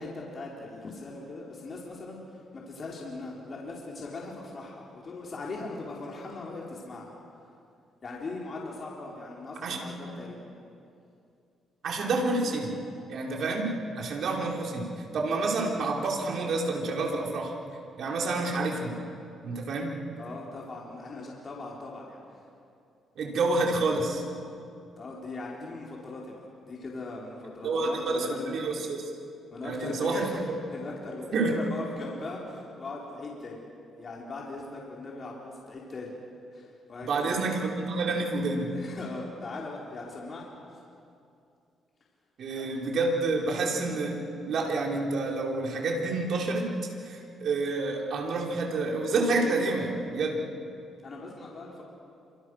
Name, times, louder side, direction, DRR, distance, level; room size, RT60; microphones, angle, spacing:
voice 1, 0.0-7.1 8.0-10.5 20.2-22.2 25.0-28.6 29.5-30.4 30.7-33.6 34.0-36.2 36.5-37.4 38.0-38.1 38.7-40.5 42.5-42.7 51.0-51.8, left 3 dB, 45° left, -3 dB, 4.7 m, -40 dB
voice 2, 9.6-10.0 11.8-12.7 13.1-17.5 18.0-19.0 19.4-19.9 23.2-24.2 27.6-29.0 29.6-30.3 31.3-31.5 37.0-38.7 42.4-44.2 44.5-46.7 47.0-50.4, right 3 dB, 65° right, 0 dB, 4.6 m, -28 dB
28.5 x 26.5 x 6.6 m, 2.5 s
cardioid pair, 90°, 0 cm